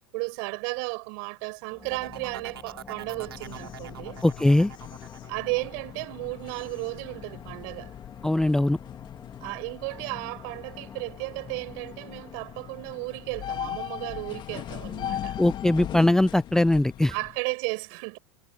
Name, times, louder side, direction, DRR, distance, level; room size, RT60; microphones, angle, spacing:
voice 1, 0.0-4.2 5.3-7.9 9.4-15.4 17.1-18.2, right 38 dB, 60° right, 6.2 m, -34 dB
sound 1, 1.7-15.0, left 5 dB, 20° left, 4.0 m, -49 dB
sound 2, 1.9-7.5 7.9-8.4, right 9 dB, 80° right, 6.0 m, -44 dB
sound 3, 2.9-17.4, left 11 dB, 40° left, 2.3 m, -40 dB
voice 2, 4.2-4.7 8.2-8.8 15.4-17.1, left 1 dB, 5° left, 0.4 m, -21 dB
hypercardioid pair, 90°, 13 cm